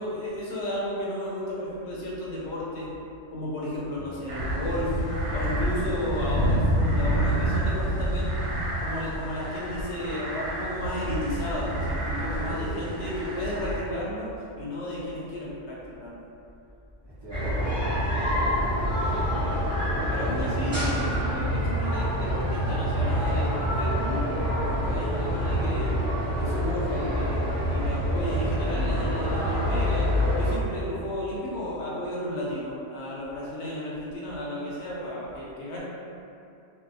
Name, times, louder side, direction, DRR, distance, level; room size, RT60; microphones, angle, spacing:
voice 1, 0.0-2.9 3.3-4.9 5.3-8.4 8.8-14.3 14.6-16.2 20.1-24.3 24.7-26.0 26.4-35.8, left 1 dB, 70° left, -6 dB, 0.9 m, -33 dB
sound 1, 4.3-13.8, right 1 dB, 70° right, 0.9 m, -28 dB
voice 2, 12.4-12.8 17.0-17.9 18.2-21.1, right 1 dB, 40° right, -11 dB, 0.4 m, -40 dB
sound 2, 17.3-30.5, equal, 5° right, 1.1 m, -26 dB
2.6 x 2.2 x 2.6 m, 2.6 s
omnidirectional pair, 1.3 m